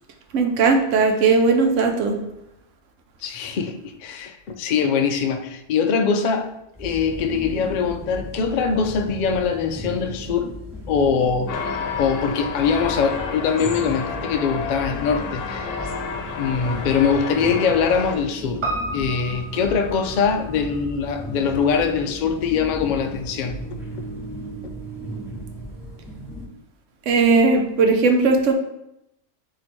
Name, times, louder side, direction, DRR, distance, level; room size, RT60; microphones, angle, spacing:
voice 1, 0.3-2.2 27.1-28.5, right 4 dB, 75° right, 4 dB, 1.0 m, -18 dB
voice 2, 3.2-6.5 6.8-10.5 10.9-11.7 12.0-15.8 16.4-18.6 18.9-23.6, left 6 dB, 65° left, 7 dB, 0.4 m, -22 dB
sound 1, 6.7-26.5, left 1 dB, ahead, 0.9 m, -36 dB
sound 2, 11.5-18.2, left 5 dB, 85° left, 1.0 m, -30 dB
Piano, 18.6-23.1 23.4-23.5, right 2 dB, 35° right, 0.5 m, -34 dB
4.4 x 2.8 x 4.2 m, 0.84 s
omnidirectional pair, 1.3 m